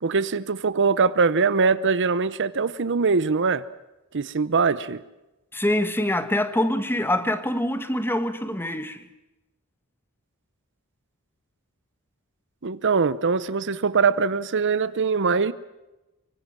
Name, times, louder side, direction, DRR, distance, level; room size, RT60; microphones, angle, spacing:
voice 1, 0.0-3.6 4.1-5.0 12.6-15.5, right 5 dB, 55° right, 0.8 m, -22 dB
voice 2, 5.5-9.1, left 1 dB, 10° left, 1.5 m, -25 dB
25.0 x 24.0 x 7.4 m
head